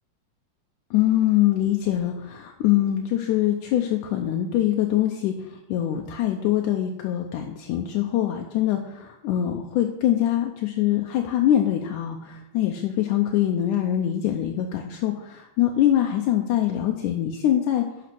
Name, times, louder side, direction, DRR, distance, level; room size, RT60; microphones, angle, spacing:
voice 1, 0.9-17.8, left 12 dB, 80° left, 2 dB, 2.2 m, -23 dB
11.0 x 5.6 x 6.0 m, 0.89 s
omnidirectional pair, 3.6 m